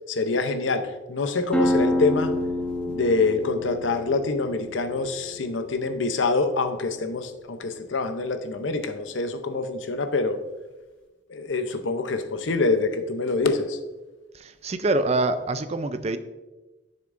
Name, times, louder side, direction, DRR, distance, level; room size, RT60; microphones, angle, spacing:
voice 1, 0.1-2.3 2.9-10.4 11.3-13.8, left 3 dB, 90° left, 9 dB, 0.7 m, -25 dB
sound 1, 1.5-6.9, left 1 dB, 5° left, 1.0 m, -28 dB
voice 2, 14.3-16.2, right 2 dB, 35° right, 11 dB, 0.4 m, -25 dB
10.5 x 6.6 x 2.5 m, 1.1 s
head